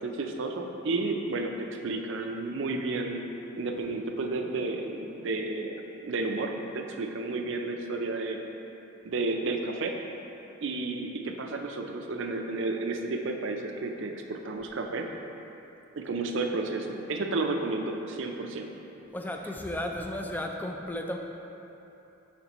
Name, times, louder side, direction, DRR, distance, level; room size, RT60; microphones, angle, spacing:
voice 1, 0.0-3.2 3.6-8.4 9.0-10.0 10.6-15.1 16.0-18.7, right 3 dB, 60° right, 3 dB, 0.5 m, -32 dB
voice 2, 19.1-21.2, left 1 dB, 10° left, 2 dB, 0.3 m, -34 dB
7.2 x 6.0 x 3.0 m, 3.0 s
head